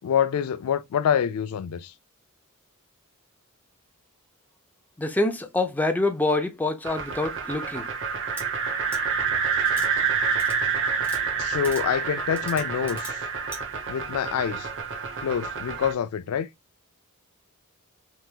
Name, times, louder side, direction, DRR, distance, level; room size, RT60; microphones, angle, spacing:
voice 1, 0.0-1.9 11.4-13.2 13.9-14.7 15.2-16.5, left 8 dB, 80° left, 0.3 m, -26 dB
voice 2, 5.0-7.9, left 2 dB, 10° left, 0.4 m, -26 dB
sound 1, 6.8-15.9, right 5 dB, 60° right, 0.7 m, -28 dB
sound 2, 8.4-8.5 8.9-9.0 9.7-9.9 10.4-10.6 11.0-11.2 11.6-11.8 12.4-13.1 13.5-13.6, right 2 dB, 10° right, 1.3 m, -39 dB
3.4 x 2.9 x 2.2 m
head